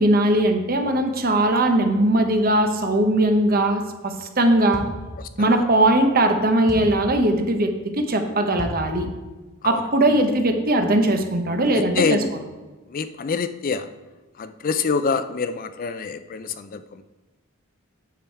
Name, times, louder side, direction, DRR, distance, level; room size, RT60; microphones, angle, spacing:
voice 1, 0.0-4.8 5.4-9.1 9.6-12.2, right 1 dB, 45° right, 5 dB, 1.0 m, -20 dB
sound 1, 4.7-5.2 6.7-7.1 8.6-9.0, equal, ahead, 1.3 m, -33 dB
voice 2, 5.2-5.5 9.6-9.8 11.7-12.3 12.9-13.9 14.4-17.0, left 5 dB, 40° left, 11 dB, 0.4 m, -26 dB
9.3 x 6.2 x 4.6 m, 1.2 s
head